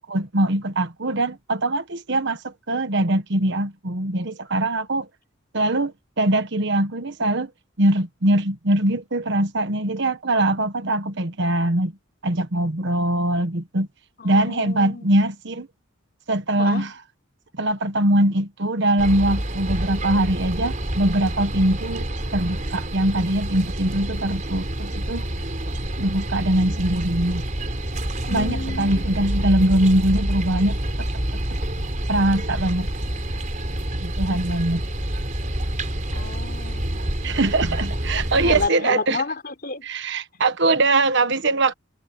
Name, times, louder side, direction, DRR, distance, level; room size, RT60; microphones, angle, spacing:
voice 1, 0.1-5.1 5.5-7.5 7.8-11.9 12.2-13.9 14.2-15.7 16.3-17.0 17.6-22.1 22.3-25.2 26.0-27.4 28.3-30.8 32.1-32.9 33.9-34.8 37.2-39.2 39.8-41.7, right 1 dB, 60° right, 1.3 m, -22 dB
voice 2, 14.2-15.1 16.6-16.8 28.3-29.0 36.1-37.0 38.1-39.8, left 3 dB, 45° left, 4.1 m, -31 dB
sound 1, 19.0-38.7, right 1 dB, 40° right, 3.9 m, -28 dB
head